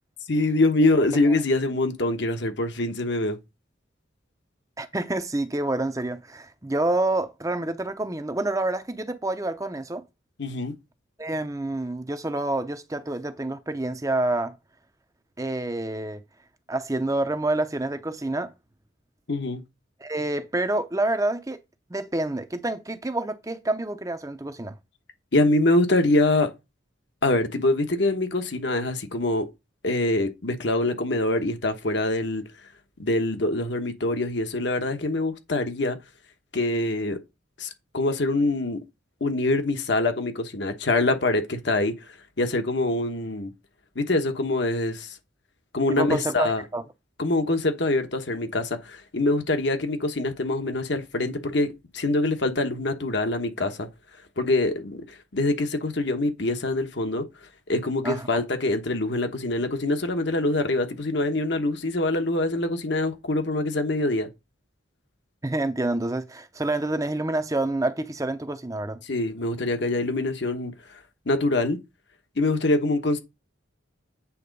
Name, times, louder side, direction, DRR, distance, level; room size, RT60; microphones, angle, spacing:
voice 1, 0.3-3.4 10.4-10.7 19.3-19.6 25.3-26.5 27.2-29.5 29.8-32.4 33.0-36.0 36.5-37.2 37.6-38.8 39.2-41.9 42.4-43.5 43.9-45.2 45.7-46.6 47.2-51.7 51.9-53.9 54.4-57.2 57.7-64.3 69.0-70.7 71.3-71.8 72.4-73.2, left 2 dB, 60° left, 1.2 m, -24 dB
voice 2, 4.8-10.0 11.2-14.6 15.4-16.2 16.7-18.5 20.0-21.6 21.9-24.8 45.9-46.8 58.0-58.4 65.4-69.0, right 2 dB, 15° right, 0.7 m, -28 dB
8.6 x 3.7 x 5.2 m
head